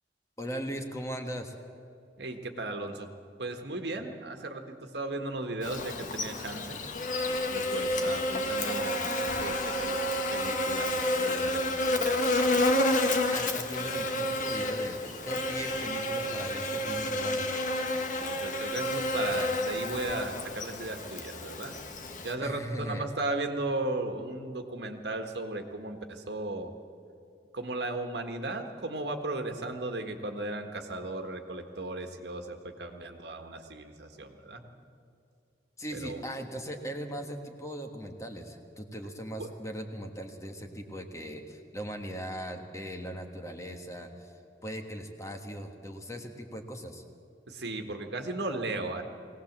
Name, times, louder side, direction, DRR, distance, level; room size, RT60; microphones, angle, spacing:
voice 1, 0.4-1.5 13.3-15.0 15.2-17.5 22.4-23.0 35.8-44.3 44.6-47.0, equal, 20° left, 4 dB, 1.5 m, -39 dB
voice 2, 2.2-6.8 7.5-9.0 9.4-10.0 10.3-12.4 18.2-21.7 22.2-26.7 27.5-34.6 35.9-36.2 39.4-39.5 47.5-49.0, right 2 dB, 70° right, 5 dB, 1.6 m, -36 dB
Buzz, 5.6-22.3, left 1 dB, 50° left, 1.5 m, -30 dB
21.0 x 18.0 x 7.4 m, 2.6 s
head